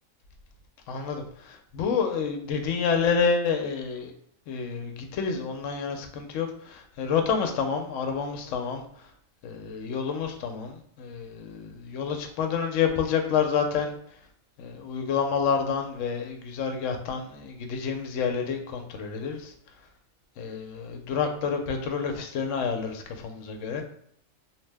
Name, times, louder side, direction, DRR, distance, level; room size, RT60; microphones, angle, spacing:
voice 1, 0.9-4.1 4.5-9.1 9.4-14.0 14.6-19.5 20.4-23.8, left 6 dB, 75° left, 4 dB, 0.9 m, -29 dB
2.8 x 2.0 x 3.3 m, 0.68 s
omnidirectional pair, 1.4 m